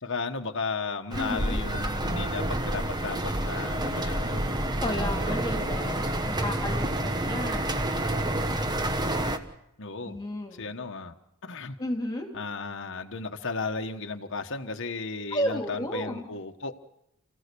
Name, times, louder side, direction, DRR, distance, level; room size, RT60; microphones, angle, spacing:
voice 1, 0.0-4.4 6.6-6.8 9.8-10.2 10.5-11.1 11.4-11.8 12.3-16.7, left 4 dB, 55° left, 6 dB, 1.3 m, -35 dB
voice 2, 1.1-1.6 4.8-7.0 7.3-7.8 10.0-10.7 11.8-12.3 15.3-16.2, left 1 dB, 20° left, 2 dB, 2.9 m, -32 dB
sound 1, 1.1-9.4, right 1 dB, 20° right, 1.2 m, -28 dB
sound 2, 1.7-6.3, right 1 dB, 90° right, 2.4 m, -47 dB
29.5 x 16.0 x 6.9 m, 0.80 s
head